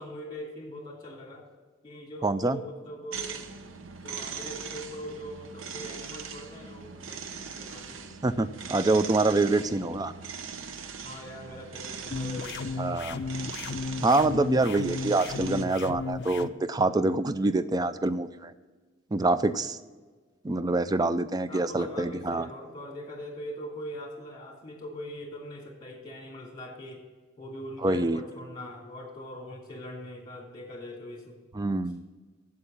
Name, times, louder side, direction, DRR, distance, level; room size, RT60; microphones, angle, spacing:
voice 1, 0.0-1.5 1.8-3.5 4.0-8.1 8.7-9.6 11.0-12.7 21.5-27.0 27.4-31.4, equal, 20° left, 0 dB, 2.6 m, -42 dB
voice 2, 2.2-2.6 8.2-10.1 12.8-13.2 14.0-18.5 19.1-19.8 20.4-22.5 27.8-28.2 31.5-32.0, right 2 dB, 20° right, 13 dB, 0.4 m, -26 dB
sound 1, 3.1-15.7, right 6 dB, 70° right, 0.7 m, -41 dB
sound 2, 12.1-16.5, left 4 dB, 55° left, 0.4 m, -34 dB
8.2 x 7.8 x 7.2 m, 1.4 s
head